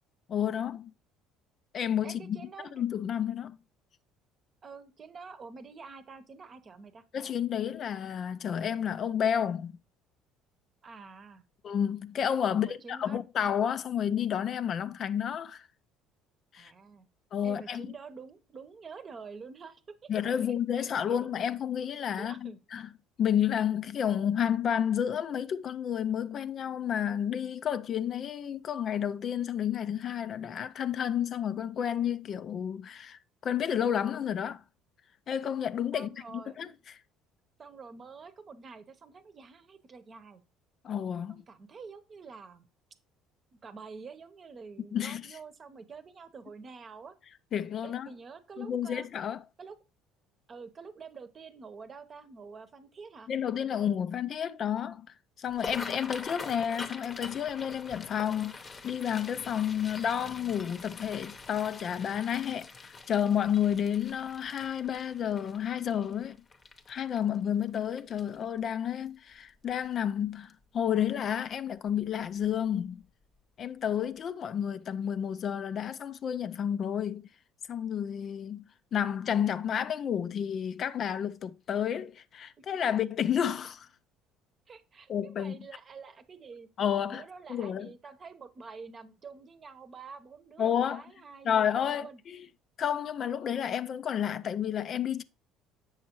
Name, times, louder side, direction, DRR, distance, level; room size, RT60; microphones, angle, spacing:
voice 1, 0.3-0.9 1.7-2.4 2.8-3.6 7.1-9.7 11.6-15.7 16.5-16.7 17.3-17.9 20.1-22.9 23.2-34.6 35.3-37.0 40.8-41.4 44.9-45.2 47.5-48.1 48.6-49.4 53.3-55.1 55.4-66.4 66.9-73.0 73.6-77.3 77.7-78.6 78.9-83.9 85.1-85.6 86.8-87.2 87.5-87.9 90.6-91.0 91.4-92.5 92.8-95.2, left 9 dB, 50° left, 0.4 m, -31 dB
voice 2, 2.0-2.8 4.6-7.0 10.8-11.4 12.5-13.2 16.6-17.1 17.4-20.1 20.7-21.3 22.2-22.6 35.9-36.6 37.6-40.4 41.3-42.7 43.6-47.1 47.8-49.1 49.6-49.8 50.5-53.3 82.6-82.8 84.7-86.7 87.1-92.2, right 5 dB, 35° right, 0.9 m, -47 dB
sound 1, 55.5-68.6 69.1-69.3 69.7-70.1 70.5-70.6 71.9-72.1 72.4-72.5 73.0-73.1, left 4 dB, 30° left, 0.8 m, -45 dB
7.4 x 6.4 x 3.0 m
supercardioid pair, 95°, 0 cm